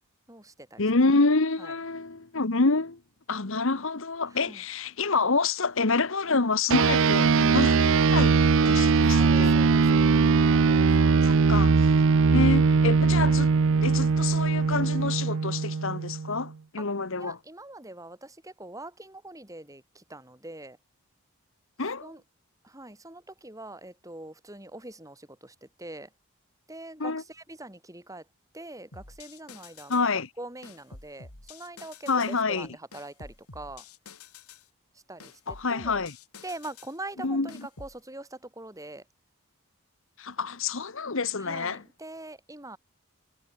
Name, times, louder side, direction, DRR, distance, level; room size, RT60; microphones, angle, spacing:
voice 1, 0.3-0.8 1.6-1.7 4.3-4.6 8.8-10.9 11.2-11.5 16.8-16.9 17.2-20.8 22.0-22.2 22.6-26.1 26.7-28.3 28.5-30.1 30.4-33.9 34.9-36.0 36.4-39.1 41.4-42.8, right 2 dB, 15° right, 5.7 m, -43 dB
voice 2, 0.8-3.0 3.3-8.4 8.6-9.5 11.2-11.9 12.3-13.5 13.8-17.4 21.8-22.1 27.0-27.2 29.9-30.3 32.1-32.7 35.5-36.1 37.2-37.5 40.2-41.8, left 3 dB, 60° left, 1.2 m, -27 dB
sound 1, 6.7-16.4, right 4 dB, 60° right, 0.5 m, -21 dB
sound 2, 28.9-30.1 30.6-32.4 32.9-34.7 35.2-37.0 37.5-38.0, left 4 dB, 85° left, 4.0 m, -48 dB
head